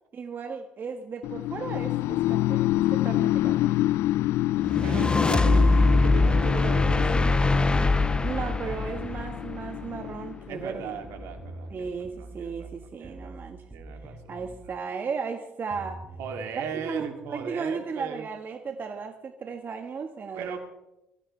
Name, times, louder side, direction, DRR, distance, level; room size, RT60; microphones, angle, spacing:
voice 1, 0.1-3.7 8.2-11.0 11.7-13.6 14.3-16.0 16.7-20.6, right 5 dB, 45° right, 5 dB, 1.6 m, -35 dB
sound 1, 1.2-11.2, left 15 dB, 70° left, 0.4 m, -28 dB
sound 2, 4.6-10.0, left 2 dB, 20° left, 0.7 m, -23 dB
voice 2, 4.8-7.3 10.5-11.9 12.4-12.7 13.0-13.3 13.7-14.2 14.7-14.8 16.2-18.2 20.3-20.6, right 7 dB, 70° right, 4 dB, 2.7 m, -38 dB
sound 3, 8.4-9.3 11.0-14.7 15.7-17.4, right 2 dB, 15° right, 5.8 m, -45 dB
22.5 x 15.0 x 3.4 m, 0.91 s
hypercardioid pair, 60°, 5 cm